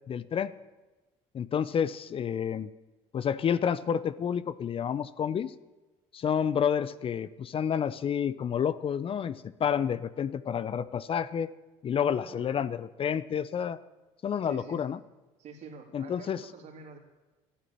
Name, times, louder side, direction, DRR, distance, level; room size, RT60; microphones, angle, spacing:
voice 1, 0.1-0.5 1.3-2.7 3.1-5.5 6.1-11.5 11.8-13.8 14.2-15.0 15.9-16.4, left 8 dB, 40° left, 15 dB, 0.8 m, -29 dB
voice 2, 9.6-9.9 12.2-12.6 14.4-14.8 15.4-17.0, right 5 dB, 55° right, 2 dB, 3.7 m, -48 dB
13.0 x 11.5 x 8.8 m, 1.1 s
supercardioid pair, 75°, 14 cm